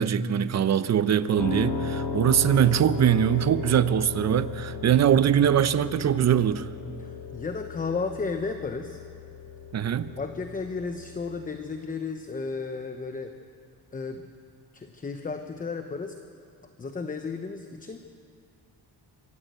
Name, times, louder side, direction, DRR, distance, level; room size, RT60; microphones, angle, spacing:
voice 1, 0.0-6.7 9.7-10.1, right 9 dB, 40° right, 0.7 m, -22 dB
Piano, 1.4-11.5, left 5 dB, 80° left, 2.3 m, -36 dB
voice 2, 7.0-9.0 10.2-13.4 13.9-14.3 14.7-16.2 16.8-18.0, left 4 dB, 20° left, 0.8 m, -33 dB
24.5 x 13.5 x 8.2 m
cardioid pair, 135°, 41 cm